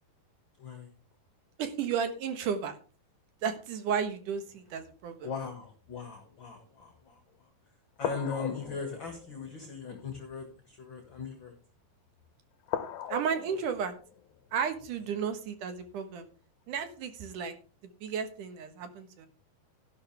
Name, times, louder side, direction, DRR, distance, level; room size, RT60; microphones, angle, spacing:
voice 1, 0.6-0.9 5.2-7.2 8.0-11.6, left 5 dB, 40° left, 4 dB, 1.9 m, -39 dB
voice 2, 1.6-2.8 3.4-5.3 13.1-13.9 14.5-16.2 16.7-17.5 18.0-19.3, right 7 dB, 65° right, 8 dB, 2.6 m, -33 dB
sound 1, 3.9-5.2 5.8-6.0 6.9-7.0 8.0-11.6 12.1-12.3 12.6-16.1 16.8-17.0, left 10 dB, 70° left, 2.1 m, -42 dB
13.0 x 11.5 x 3.4 m, 0.37 s
omnidirectional pair, 4.4 m